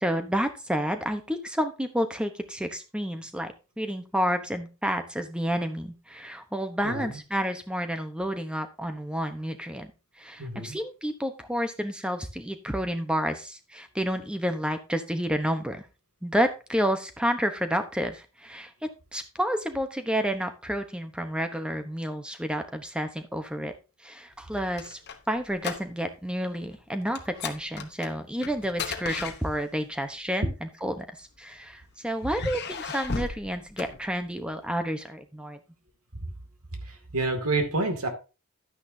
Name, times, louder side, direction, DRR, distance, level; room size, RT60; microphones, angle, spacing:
voice 1, 0.0-3.5 3.8-9.9 10.2-15.8 16.2-18.7 19.1-23.7 24.0-25.0 25.3-35.6, equal, 5° right, 8 dB, 0.9 m, -30 dB
voice 2, 10.4-10.8 37.1-38.1, right 2 dB, 85° right, 6 dB, 2.4 m, -28 dB
sound 1, 24.4-26.3 26.5-26.8 27.2-29.9 30.8-31.7 32.2-34.5, left 5 dB, 50° left, 1.0 m, -37 dB
11.0 x 9.5 x 2.7 m, 0.30 s
head